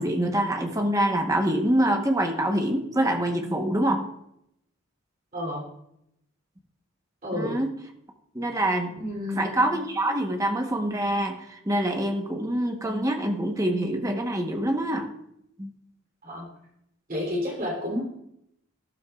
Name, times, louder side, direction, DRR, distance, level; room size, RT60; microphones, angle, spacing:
voice 1, 0.0-4.1 7.4-7.7 8.3-9.0 9.4-15.1 15.6-15.7, right 1 dB, 15° right, 3 dB, 1.0 m, -25 dB
voice 2, 5.3-5.6 7.2-7.5 9.0-9.6 16.2-16.5 17.1-18.0, left 1 dB, 40° right, -1 dB, 3.1 m, -30 dB
13.0 x 12.5 x 2.4 m, 0.77 s
head